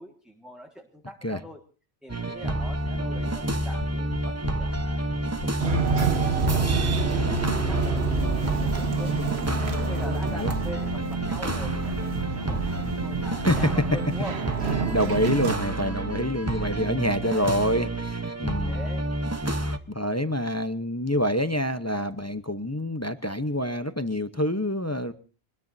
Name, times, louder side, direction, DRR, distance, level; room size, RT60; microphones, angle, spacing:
voice 1, 0.0-1.6 2.0-6.1 6.4-9.1 9.5-14.4 17.2-17.6 18.7-19.1, right 1 dB, ahead, 2 dB, 1.7 m, -43 dB
sound 1, 2.1-19.8, right 1 dB, 15° right, 0.8 m, -29 dB
sound 2, 3.1-14.3 14.5-14.6 14.8-14.9, left 3 dB, 85° left, 1.6 m, -40 dB
sound 3, 5.6-15.6, right 5 dB, 75° right, 1.4 m, -28 dB
voice 2, 14.9-18.8 19.9-25.1, equal, 15° left, 10 dB, 0.7 m, -27 dB
24.5 x 20.5 x 2.7 m, 0.37 s
omnidirectional pair, 1.1 m